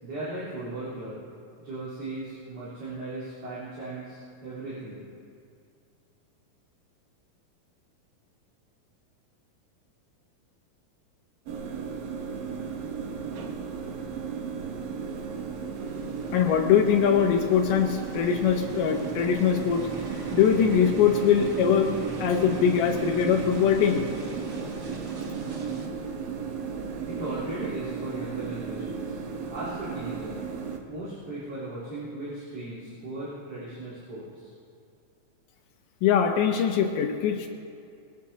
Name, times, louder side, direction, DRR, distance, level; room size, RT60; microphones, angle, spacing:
voice 1, 0.0-1.2 1.6-5.0 27.1-29.2 29.5-30.4 30.9-34.5, right 2 dB, 45° right, -12 dB, 4.7 m, -37 dB
sound 1, 11.5-30.8, right 6 dB, 90° right, 2.9 m, -35 dB
sound 2, 15.7-25.9, right 2 dB, 65° right, 1.0 m, -39 dB
voice 2, 16.3-19.8 20.3-24.1 36.0-37.5, left 8 dB, 75° left, 3 dB, 2.4 m, -22 dB
22.0 x 16.5 x 2.9 m, 2.4 s
omnidirectional pair, 3.9 m